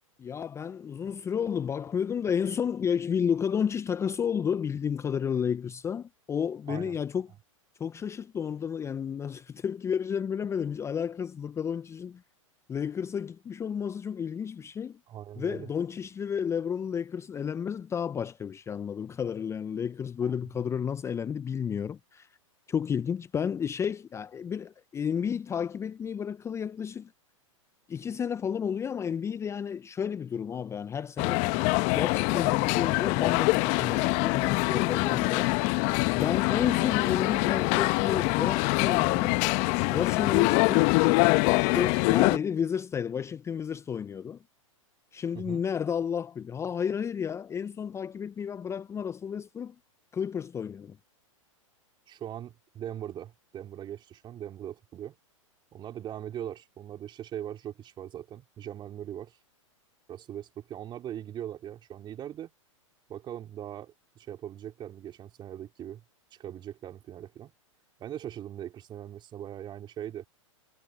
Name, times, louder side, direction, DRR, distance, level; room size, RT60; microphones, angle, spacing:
voice 1, 0.2-7.3 7.8-12.2 12.7-15.0 15.4-22.3 22.7-27.1 27.9-35.5 36.1-39.4 39.9-41.0 41.6-44.4 45.1-49.8 50.1-51.0, left 7 dB, 15° left, 0.7 m, -32 dB
voice 2, 15.1-15.7 20.2-20.3 45.3-45.6 52.1-55.1 55.7-59.4 60.1-62.5 63.1-66.0 66.3-67.5 68.0-70.3, right 11 dB, 25° right, 2.8 m, -40 dB
sound 1, 31.2-42.4, left 28 dB, 40° left, 1.1 m, -24 dB
hypercardioid pair, 110°, 17 cm